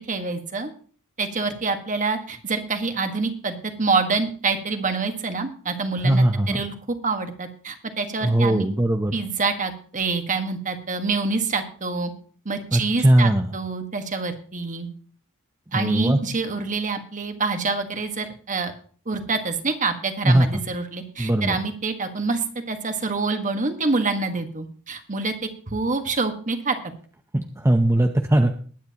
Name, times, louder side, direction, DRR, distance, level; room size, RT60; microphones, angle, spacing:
voice 1, 0.1-0.7 1.2-8.7 9.1-12.1 12.4-14.9 15.7-18.7 19.0-26.8, right 4 dB, 35° right, 6 dB, 1.5 m, -26 dB
voice 2, 6.0-6.6 8.2-9.2 12.7-13.5 15.7-16.2 20.2-20.5 21.2-21.6 27.3-28.5, right 1 dB, 10° right, 5 dB, 0.7 m, -19 dB
20.0 x 9.4 x 2.9 m, 0.44 s
head